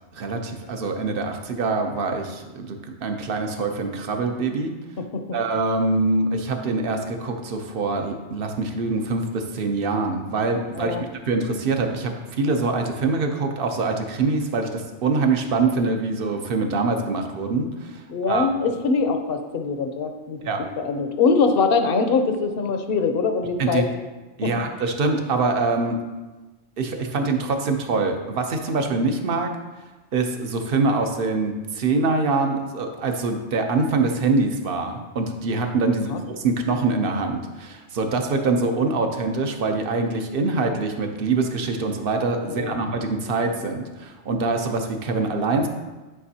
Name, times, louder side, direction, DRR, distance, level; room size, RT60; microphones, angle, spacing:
voice 1, 0.1-4.7 5.3-11.0 11.2-18.5 20.4-20.6 23.6-23.8 24.4-26.0 26.8-29.5 30.1-45.7, right 3 dB, 55° right, 5 dB, 0.9 m, -24 dB
voice 2, 18.1-23.8 24.4-24.5 36.1-36.2 42.5-42.8, left 4 dB, 60° left, 7 dB, 0.8 m, -23 dB
9.9 x 5.1 x 2.8 m, 1.2 s
omnidirectional pair, 1.2 m